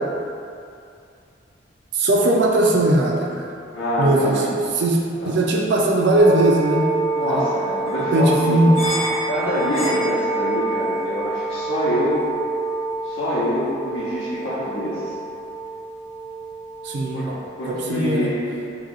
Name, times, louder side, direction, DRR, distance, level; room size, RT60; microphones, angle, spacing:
voice 1, 1.9-3.5 4.0-5.0 5.2-6.9 7.2-7.5 8.0-8.8 16.8-17.4 17.7-18.3, right 1 dB, 60° right, -1 dB, 0.4 m, -19 dB
voice 2, 3.7-4.5 5.2-5.3 7.1-8.6 9.3-12.2 13.0-15.0 17.1-17.3 17.6-18.5, equal, 80° left, -11 dB, 0.8 m, -25 dB
sound 1, 6.2-17.9, right 3 dB, 30° left, 0.7 m, -27 dB
2.9 x 2.6 x 3.8 m, 2.5 s
head